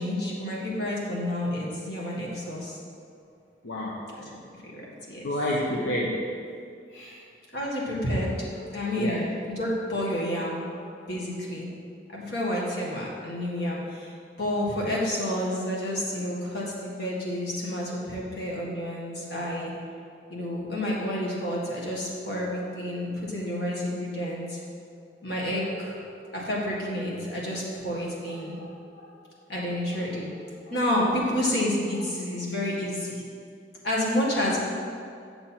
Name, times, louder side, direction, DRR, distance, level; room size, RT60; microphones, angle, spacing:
voice 1, 0.0-2.8 4.2-4.3 4.6-4.8 5.1-5.2 7.5-9.2 9.5-11.7 12.1-19.7 20.3-24.6 25.2-29.2 29.5-33.2 33.8-34.6, left 1 dB, 55° left, -5 dB, 1.8 m, -30 dB
voice 2, 3.6-4.0 5.2-6.3 6.9-7.2 9.0-9.3, left 1 dB, 75° left, -4 dB, 0.9 m, -29 dB
7.6 x 6.8 x 4.4 m, 2.3 s
head